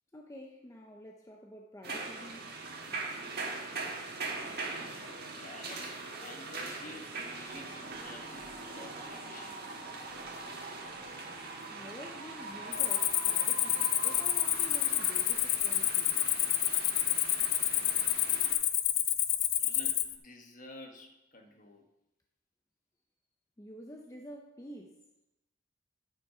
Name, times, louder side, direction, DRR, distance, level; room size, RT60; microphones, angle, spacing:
voice 1, 0.1-2.5 11.7-16.3 23.6-24.9, equal, 15° left, 1 dB, 0.6 m, -49 dB
sound 1, 1.8-18.5, right 3 dB, 50° right, 1.5 m, -42 dB
voice 2, 5.0-8.4 8.7-9.6 19.6-21.8, left 2 dB, 40° left, 3 dB, 1.2 m, -50 dB
Wind, 7.2-15.3, right 2 dB, 35° right, 1.5 m, -47 dB
Cricket, 12.7-20.1, left 12 dB, 75° left, 0.5 m, -29 dB
9.8 x 5.5 x 4.9 m, 0.91 s
head